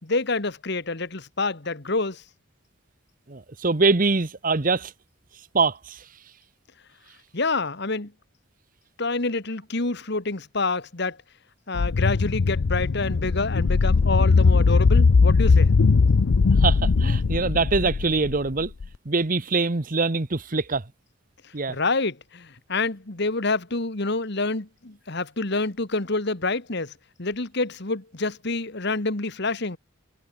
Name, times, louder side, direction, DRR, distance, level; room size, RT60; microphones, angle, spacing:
voice 1, 0.0-2.2 7.3-8.1 9.0-11.2 11.7-15.7 21.7-26.9 27.2-29.8, left 3 dB, 55° left, 1.8 m, -27 dB
voice 2, 3.3-4.9 5.5-6.0 16.6-18.7 19.0-20.8 21.5-21.7, right 3 dB, 40° right, 1.0 m, -23 dB
sound 1, 11.7-18.9, left 4 dB, 90° left, 0.6 m, -19 dB
head